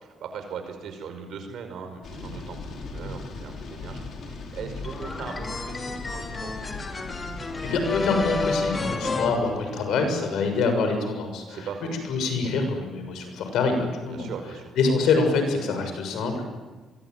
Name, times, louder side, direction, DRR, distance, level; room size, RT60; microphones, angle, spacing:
voice 1, 0.0-6.7 11.5-11.9 14.1-14.7, right 6 dB, 70° right, 6 dB, 5.3 m, -39 dB
sound 1, 2.0-8.9, left 3 dB, 65° left, 5.6 m, -38 dB
sound 2, 4.8-10.2, left 3 dB, 30° left, 3.5 m, -31 dB
voice 2, 7.6-11.6 12.1-14.3 14.8-16.5, left 4 dB, 80° left, 6 dB, 6.6 m, -25 dB
26.0 x 22.5 x 9.4 m, 1.3 s
cardioid pair, 90°, 0 cm